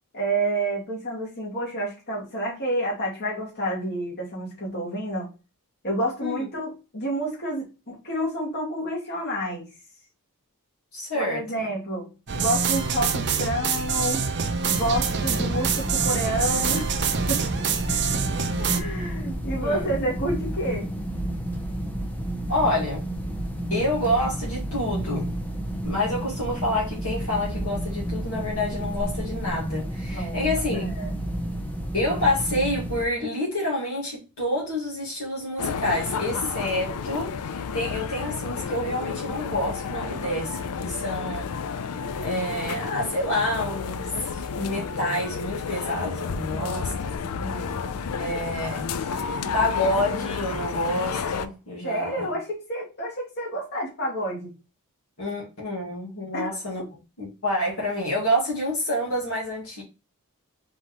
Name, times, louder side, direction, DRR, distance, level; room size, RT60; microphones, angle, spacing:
voice 1, 0.1-5.3 5.8-9.7 11.1-12.1 12.3-14.2 14.6-16.9 17.3-17.4 18.7-20.9 30.1-30.5 30.9-31.1 46.5-46.8 47.3-47.7 51.8-54.5 56.3-56.5, right 1 dB, 50° left, 2.2 m, -29 dB
voice 2, 10.9-11.7 17.9-18.2 18.6-19.2 19.6-19.9 22.5-23.1 23.7-25.3 25.8-30.9 31.9-41.5 41.8-41.9 42.2-47.2 48.2-52.3 55.2-56.8 57.2-59.8, left 1 dB, 65° left, 1.9 m, -28 dB
sound 1, 12.3-18.8, right 6 dB, 50° right, 0.6 m, -26 dB
sound 2, 14.7-33.0, right 1 dB, 5° left, 0.7 m, -31 dB
sound 3, 35.6-51.5, left 6 dB, 85° left, 0.5 m, -31 dB
4.2 x 3.9 x 3.0 m
head